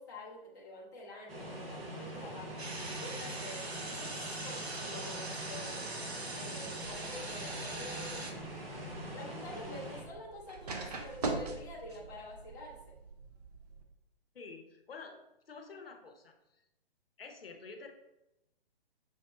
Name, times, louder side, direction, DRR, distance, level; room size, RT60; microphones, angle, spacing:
voice 1, 0.0-2.6 3.0-4.2 4.4-5.8 6.3-8.7 9.1-12.9, left 1 dB, 20° left, -3 dB, 0.5 m, -47 dB
sound 1, 1.3-10.0, right 1 dB, 65° right, 1.1 m, -43 dB
sound 2, 2.6-8.3, right 2 dB, 90° right, 0.7 m, -42 dB
sound 3, 6.7-13.8, right 3 dB, 40° right, 0.5 m, -43 dB
voice 2, 14.3-15.2 15.5-16.3 17.2-17.9, left 4 dB, 65° left, 5 dB, 0.7 m, -48 dB
6.1 x 2.0 x 2.9 m, 0.90 s
figure-of-eight pair, 130°, 31 cm